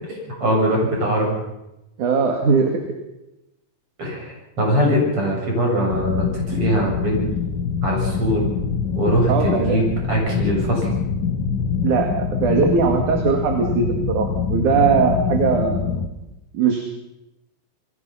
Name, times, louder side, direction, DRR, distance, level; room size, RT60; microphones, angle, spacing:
voice 1, 0.0-1.4 4.0-7.3 7.8-8.5 8.9-10.9, equal, 35° right, -1 dB, 8.4 m, -21 dB
voice 2, 2.0-2.8 9.3-9.8 11.8-12.1 12.4-15.8 16.5-16.9, right 5 dB, 60° right, 2 dB, 3.5 m, -19 dB
sound 1, 5.9-16.1, left 6 dB, 75° left, 3.5 m, -25 dB
28.5 x 21.5 x 5.7 m, 0.92 s
omnidirectional pair, 4.1 m